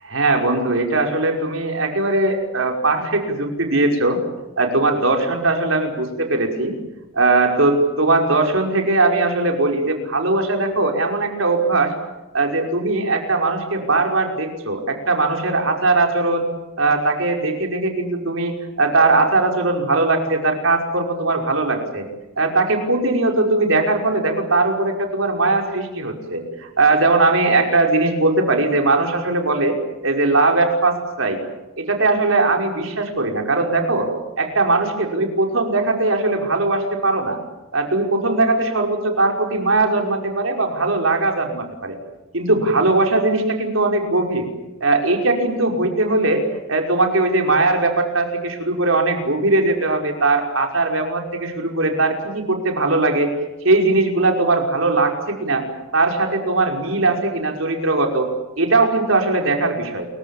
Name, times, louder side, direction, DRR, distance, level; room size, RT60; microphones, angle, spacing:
voice 1, 0.0-4.2 4.6-6.7 7.1-11.9 12.3-16.5 16.8-22.0 22.4-29.8 30.0-31.4 31.8-34.1 34.4-37.4 37.7-42.0 42.3-44.5 44.8-53.3 53.6-55.6 55.9-58.3 58.6-60.1, right 2 dB, 65° right, 3 dB, 5.5 m, -19 dB
29.5 x 23.5 x 7.3 m, 1.1 s
head